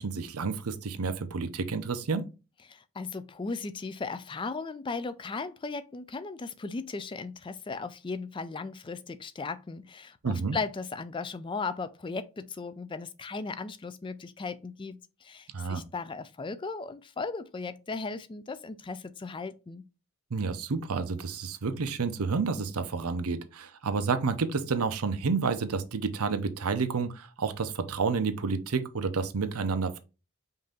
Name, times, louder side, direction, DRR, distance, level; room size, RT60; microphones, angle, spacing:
voice 1, 0.0-2.3 10.2-10.6 15.5-15.8 20.3-30.0, right 4 dB, 85° right, 0.7 m, -30 dB
voice 2, 2.7-19.8, left 4 dB, 20° left, 0.3 m, -37 dB
5.4 x 2.7 x 3.7 m
head